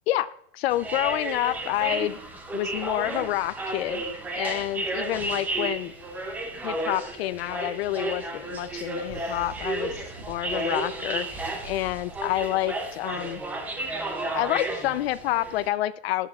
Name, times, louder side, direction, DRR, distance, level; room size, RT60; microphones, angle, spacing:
voice 1, 0.1-2.2 2.5-4.0 4.3-5.9 6.6-13.4 14.3-16.3, left 14 dB, 75° left, 15 dB, 0.5 m, -28 dB
sound 1, 0.7-15.7, right 2 dB, 5° right, 0.4 m, -33 dB
sound 2, 9.0-12.5, right 1 dB, 30° right, 2.0 m, -45 dB
14.0 x 11.0 x 2.3 m, 0.73 s
supercardioid pair, 180°, 31 cm